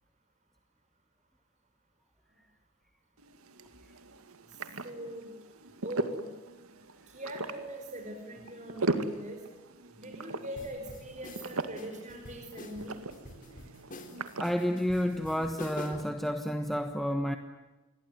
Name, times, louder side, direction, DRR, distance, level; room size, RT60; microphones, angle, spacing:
sound 1, 3.2-16.1, right 2 dB, 80° right, 2.2 m, -40 dB
voice 1, 4.5-5.3 5.8-6.2 7.1-9.4 10.0-13.0, right 1 dB, 35° right, 2 dB, 4.8 m, -41 dB
sound 2, 10.6-16.2, left 1 dB, 35° left, 4.0 m, -46 dB
voice 2, 14.4-17.4, equal, ahead, 6 dB, 1.2 m, -30 dB
28.5 x 22.0 x 9.3 m, 1.2 s
head